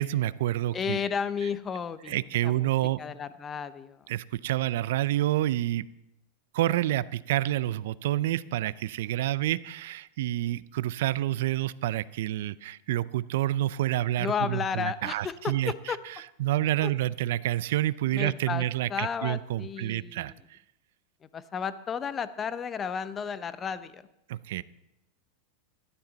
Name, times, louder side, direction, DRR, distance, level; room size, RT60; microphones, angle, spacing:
voice 1, 0.0-1.0 2.1-3.0 4.1-5.9 6.5-15.7 16.4-20.6 24.3-24.6, right 14 dB, 70° right, 18 dB, 0.5 m, -28 dB
voice 2, 0.7-2.7 3.0-4.1 14.2-16.0 16.8-16.9 18.1-18.6 18.9-20.4 21.3-24.0, left 6 dB, 20° left, 14 dB, 0.7 m, -33 dB
16.0 x 12.5 x 4.0 m, 0.85 s
supercardioid pair, 140°, 0 cm